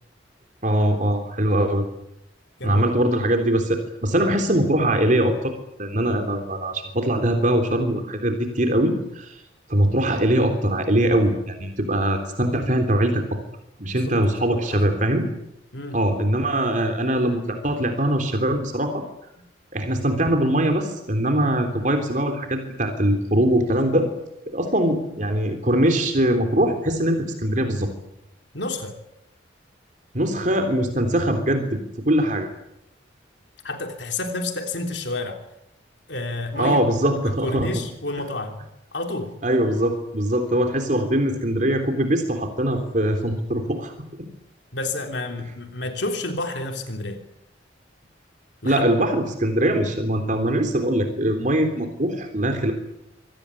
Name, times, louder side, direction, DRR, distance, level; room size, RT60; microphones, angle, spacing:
voice 1, 0.6-1.8 2.6-5.5 5.8-9.4 9.7-13.4 13.8-15.3 15.9-19.0 19.7-24.1 24.5-27.9 30.1-32.5 36.6-37.7 39.4-43.9 48.6-52.7, right 1 dB, 40° right, 5 dB, 3.5 m, -22 dB
voice 2, 2.6-3.0 13.9-14.8 15.7-16.0 28.5-29.0 33.6-35.4 36.1-36.8 37.3-38.6 38.9-39.3 44.7-47.2 48.6-48.8, left 2 dB, 65° left, 4 dB, 3.4 m, -30 dB
26.5 x 18.0 x 10.0 m, 0.81 s
head